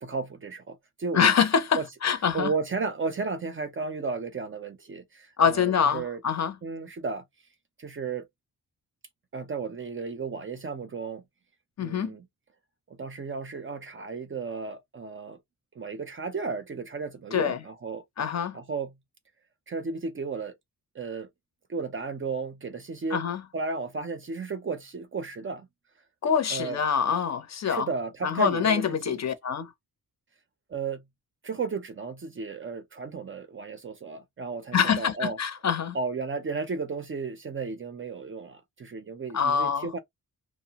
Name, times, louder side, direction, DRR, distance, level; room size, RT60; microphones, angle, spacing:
voice 1, 0.0-1.3 1.7-1.8 2.3-6.2 6.6-7.2 7.8-8.3 9.3-11.2 11.8-12.2 12.9-15.4 15.8-18.0 18.5-18.9 19.7-20.6 20.9-21.3 21.7-23.2 23.5-25.7 26.5-26.8 27.7-28.8 30.7-31.0 31.4-35.4 35.9-40.0, right 4 dB, 35° right, 0.4 m, -34 dB
voice 2, 1.1-2.5 5.4-6.5 11.8-12.1 17.3-17.6 18.2-18.6 23.1-23.4 26.2-27.9 28.2-29.7 34.7-36.0 39.3-39.9, left 7 dB, 45° left, 0.6 m, -25 dB
2.7 x 2.0 x 2.8 m
wide cardioid pair, 135°, 38 cm